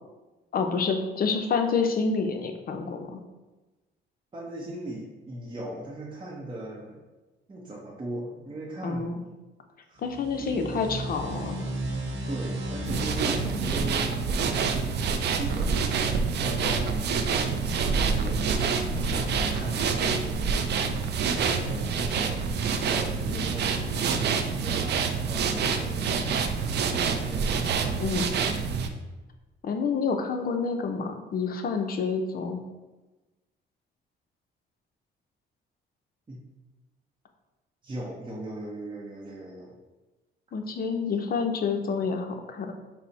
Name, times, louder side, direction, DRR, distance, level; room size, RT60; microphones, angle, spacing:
voice 1, 0.5-3.2 8.8-9.2 10.0-11.6 28.0-28.3 29.6-32.6 40.5-42.7, left 5 dB, 45° left, 5 dB, 0.5 m, -28 dB
voice 2, 4.3-7.0 7.5-9.1 9.9-10.0 10.4-10.8 12.3-20.5 21.2-24.3 24.6-28.1 36.3-36.4 37.8-39.8, right 1 dB, 25° right, -5 dB, 0.7 m, -39 dB
sound 1, 10.0-15.3, right 1 dB, 80° right, 1.0 m, -35 dB
sound 2, 12.8-28.9, right 5 dB, 60° right, 0.4 m, -27 dB
sound 3, 18.9-21.9, left 1 dB, 30° left, 0.9 m, -40 dB
4.2 x 2.0 x 4.0 m, 1.1 s
cardioid pair, 90°, 20 cm